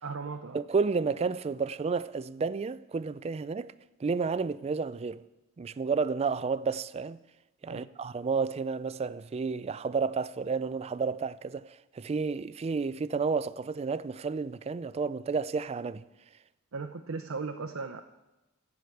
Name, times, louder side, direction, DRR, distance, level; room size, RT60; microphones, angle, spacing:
voice 1, 0.0-0.6 7.7-7.9 16.7-18.0, right 4 dB, 75° right, 0.6 m, -37 dB
voice 2, 0.5-3.7 4.0-5.2 5.6-7.2 7.6-16.0, right 5 dB, 30° right, 0.3 m, -31 dB
14.5 x 4.9 x 7.8 m
head